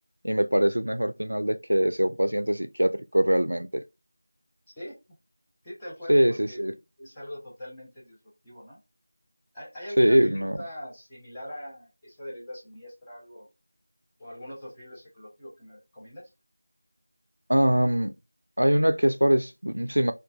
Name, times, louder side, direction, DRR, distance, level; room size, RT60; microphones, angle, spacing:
voice 1, 0.2-3.8 6.1-6.7 10.0-10.6 17.5-18.2 18.6-20.1, equal, 80° right, 0.3 m, -23 dB
voice 2, 5.6-6.6 7.0-8.2 8.4-8.8 9.5-13.5 14.2-16.3, equal, 5° left, 0.7 m, -42 dB
3.7 x 2.3 x 2.2 m
figure-of-eight pair, 170°, 0 cm